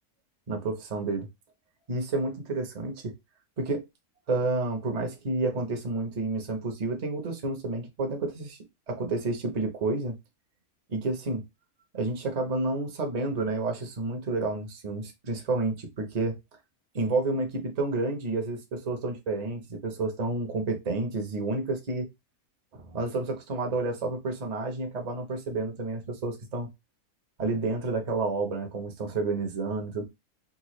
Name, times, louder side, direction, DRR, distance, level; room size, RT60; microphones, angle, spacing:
voice 1, 0.5-1.3 1.9-3.1 3.6-3.8 4.3-8.6 8.9-10.2 10.9-11.4 11.9-16.4 16.9-22.1 22.7-26.7 27.4-30.0, right 3 dB, 35° right, 0.7 m, -30 dB
3.8 x 2.3 x 3.0 m
omnidirectional pair, 1.5 m